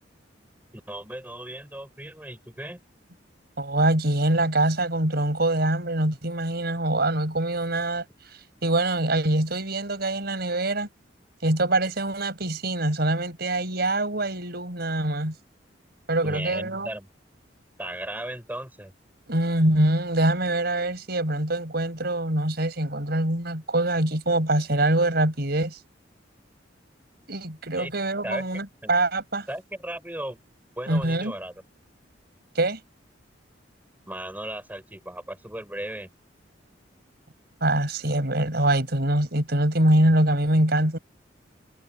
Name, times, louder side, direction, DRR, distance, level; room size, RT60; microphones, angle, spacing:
voice 1, 0.9-2.8 16.2-17.1 17.8-18.9 27.8-27.9 28.2-28.4 28.8-28.9 29.5-30.4 30.8-31.5 34.1-36.1, right 1 dB, 10° right, 5.0 m, -36 dB
voice 2, 3.6-8.0 8.6-10.9 11.4-15.3 16.1-16.9 19.3-25.8 27.3-29.5 30.9-31.3 32.5-32.8 37.6-41.0, right 1 dB, 60° right, 6.1 m, -24 dB
head